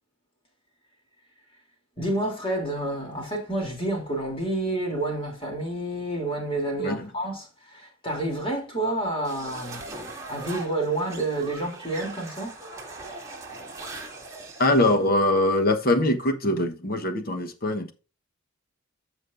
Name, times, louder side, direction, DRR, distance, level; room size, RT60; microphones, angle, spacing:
voice 1, 2.0-9.8 10.3-12.6, right 1 dB, 25° left, 3.3 m, -29 dB
voice 2, 6.8-7.1 14.6-17.9, left 1 dB, 45° left, 1.2 m, -23 dB
sound 1, 9.2-15.0, right 2 dB, 15° right, 2.2 m, -40 dB
14.5 x 5.4 x 2.6 m
head